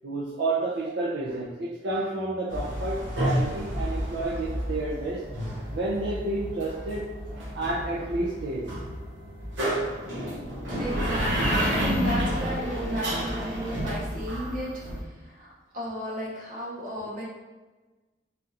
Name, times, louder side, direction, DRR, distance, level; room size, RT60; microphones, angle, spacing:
voice 1, 0.0-5.2 5.7-8.7, right 2 dB, 65° right, -7 dB, 0.5 m, -30 dB
sound 1, 2.5-15.0, equal, 90° right, 0.8 m, -30 dB
voice 2, 10.8-14.7 15.0-17.2, equal, 50° right, -6 dB, 1.0 m, -34 dB
3.4 x 2.4 x 2.8 m, 1.2 s
head